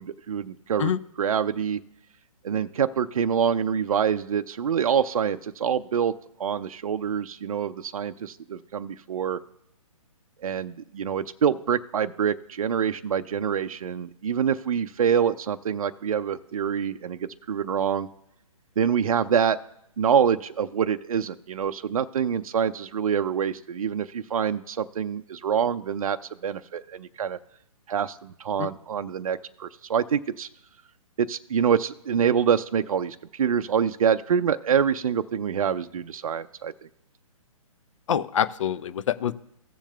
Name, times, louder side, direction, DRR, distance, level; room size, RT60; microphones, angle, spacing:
voice 1, 0.0-1.8 2.4-6.1 6.4-9.4 10.4-18.1 18.8-19.6 20.0-26.2 26.4-27.4 27.9-30.5 31.2-36.7, right 7 dB, 70° right, 9 dB, 0.4 m, -26 dB
voice 2, 38.1-39.3, left 9 dB, 60° left, 15 dB, 0.5 m, -25 dB
17.0 x 7.1 x 2.3 m, 0.80 s
hypercardioid pair, 135°, 18 cm